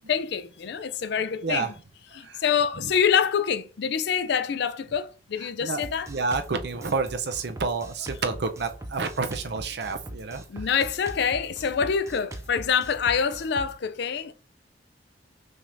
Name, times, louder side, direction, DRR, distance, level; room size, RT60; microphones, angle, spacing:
voice 1, 0.1-1.7 2.1-6.1 10.5-14.3, left 7 dB, 60° left, 0.4 m, -26 dB
voice 2, 1.1-1.7 2.2-2.4 2.8-2.9 5.4-10.7, right 4 dB, 60° right, 0.6 m, -30 dB
Drum kit, 5.8-13.8, right 1 dB, 15° right, 0.5 m, -41 dB
5.9 x 3.4 x 2.6 m
head